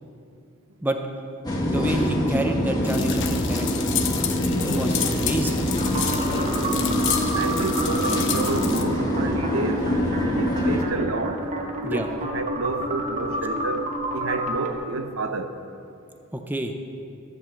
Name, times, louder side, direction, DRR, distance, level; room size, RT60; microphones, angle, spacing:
sound 1, 1.4-10.8, equal, 20° left, 1.6 m, -25 dB
voice 1, 1.6-4.4 4.7-5.7 11.8-12.1 16.3-16.7, right 1 dB, 10° right, 4 dB, 0.6 m, -28 dB
sound 2, 2.8-8.8, left 9 dB, 65° left, 0.9 m, -30 dB
sound 3, 5.8-14.7, right 1 dB, 35° right, 1.2 m, -30 dB
voice 2, 7.4-9.9 10.4-11.5 11.8-13.8 14.1-15.5, right 3 dB, 75° right, 7 dB, 0.8 m, -29 dB
14.0 x 5.5 x 7.6 m, 2.6 s
head